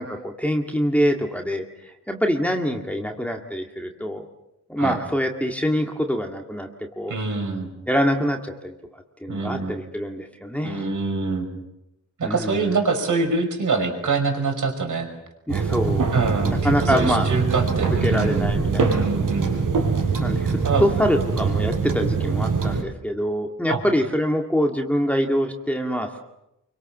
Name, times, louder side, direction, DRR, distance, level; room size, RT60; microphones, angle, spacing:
voice 1, 0.0-4.3 4.7-6.7 7.0-7.2 7.9-8.7 9.2-10.8 12.2-12.6 15.5-16.1 16.5-17.3 18.0-19.1 20.2-26.2, equal, 5° left, 2 dB, 2.1 m, -25 dB
voice 2, 7.1-7.7 9.3-9.8 10.6-11.5 12.2-15.1 16.1-18.5 18.9-19.6 20.6-20.9 23.7-23.8, right 4 dB, 70° right, 4 dB, 5.6 m, -25 dB
sound 1, 15.5-22.8, right 4 dB, 85° right, 5.2 m, -23 dB
28.5 x 24.0 x 7.3 m, 0.87 s
wide cardioid pair, 125°, 32 cm